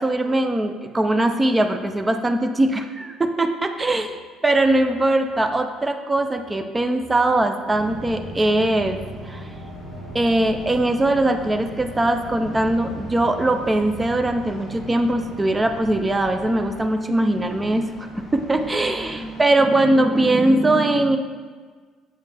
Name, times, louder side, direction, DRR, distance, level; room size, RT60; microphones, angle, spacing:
voice 1, 0.0-4.1 4.4-9.0 9.2-9.5 10.1-21.2, right 1 dB, 15° right, 7 dB, 0.4 m, -21 dB
sound 1, 7.7-19.4, equal, 10° left, 1.7 m, -42 dB
sound 2, 7.7-16.8, equal, 55° right, 1.2 m, -39 dB
7.5 x 5.2 x 3.3 m, 1.5 s
cardioid pair, 145°, 0 cm